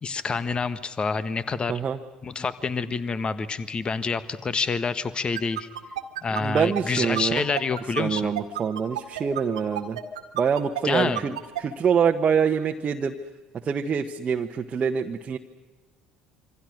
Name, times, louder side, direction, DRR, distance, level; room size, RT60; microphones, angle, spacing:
voice 1, 0.0-1.8 2.2-5.7 6.2-8.3 10.8-11.2, left 4 dB, 30° left, 14 dB, 1.5 m, -27 dB
sound 1, 5.3-11.6, right 13 dB, 75° right, 1.8 m, -30 dB
voice 2, 6.3-7.4 8.0-10.0 10.3-13.1 13.6-15.4, right 6 dB, 35° right, 3 dB, 1.3 m, -25 dB
26.5 x 25.5 x 6.5 m, 1.2 s
figure-of-eight pair, 60°, 3 cm